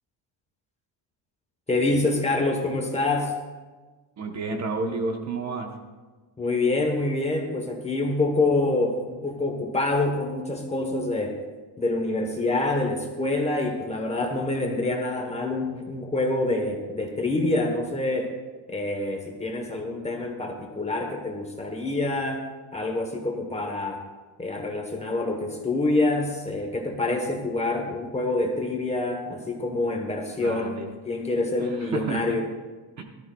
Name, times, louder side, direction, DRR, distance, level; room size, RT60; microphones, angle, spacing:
voice 1, 1.7-3.3 6.4-11.4 11.8-18.3 18.7-24.0 24.4-30.8 31.0-32.5, left 2 dB, 15° left, 2 dB, 1.1 m, -26 dB
voice 2, 4.2-5.7 30.4-30.9 31.6-32.2 33.0-33.1, right 3 dB, 35° right, 3 dB, 1.0 m, -31 dB
17.5 x 13.0 x 2.3 m, 1.3 s
cardioid pair, 180°, 45 cm